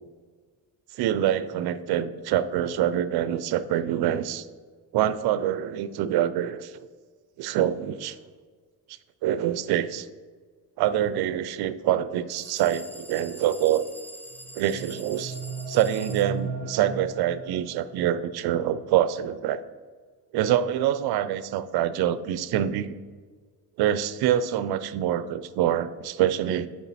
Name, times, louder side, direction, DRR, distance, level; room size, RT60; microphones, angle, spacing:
voice 1, 0.9-4.5 4.9-6.7 7.4-8.2 9.2-10.1 10.8-13.9 14.6-15.4 15.7-19.6 20.3-23.0 23.8-26.7, right 11 dB, 70° right, 14 dB, 0.5 m, -25 dB
sound 1, 12.3-16.3, left 1 dB, 5° left, 0.4 m, -45 dB
sound 2, 14.3-18.3, right 4 dB, 35° right, 0.9 m, -36 dB
7.0 x 4.7 x 4.2 m, 1.5 s
cardioid pair, 155°, 40 cm